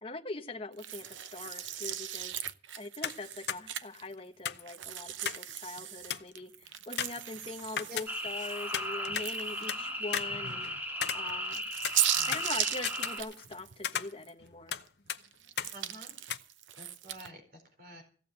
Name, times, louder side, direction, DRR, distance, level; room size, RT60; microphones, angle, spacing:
voice 1, 0.0-2.4 2.8-10.7 11.1-11.6 12.3-14.7, left 2 dB, 30° left, 5 dB, 1.2 m, -42 dB
sound 1, 0.8-4.1 4.7-9.8 10.3-10.4 11.2-14.3 14.7-17.3, right 11 dB, 85° right, 0.7 m, -37 dB
sound 2, 3.0-3.2 3.5-3.6 4.5-5.5 5.8-5.9 6.1-6.4 7.0-8.4 8.7-9.8 10.1-11.6 11.8-13.6 13.8-14.8 15.1-15.2 15.6-15.7 16.3-16.4, left 8 dB, 60° left, 0.7 m, -36 dB
sound 3, 8.1-13.2, equal, 10° right, 1.8 m, -36 dB
voice 2, 9.6-9.9 12.1-12.3 15.7-16.2 16.8-18.0, equal, 50° right, 5 dB, 4.3 m, -50 dB
16.5 x 7.1 x 8.0 m, 0.42 s
head